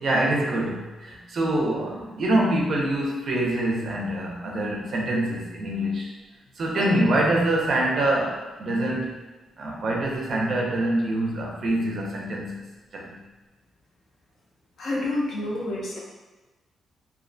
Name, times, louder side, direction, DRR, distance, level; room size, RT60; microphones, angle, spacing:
voice 1, 0.0-6.1 6.6-9.2 9.6-12.6 12.9-13.2, right 1 dB, 45° right, -1 dB, 0.4 m, -25 dB
voice 2, 14.8-16.0, left 2 dB, 55° left, -3 dB, 0.5 m, -28 dB
2.4 x 2.1 x 2.5 m, 1.2 s
wide cardioid pair, 170°, 0 cm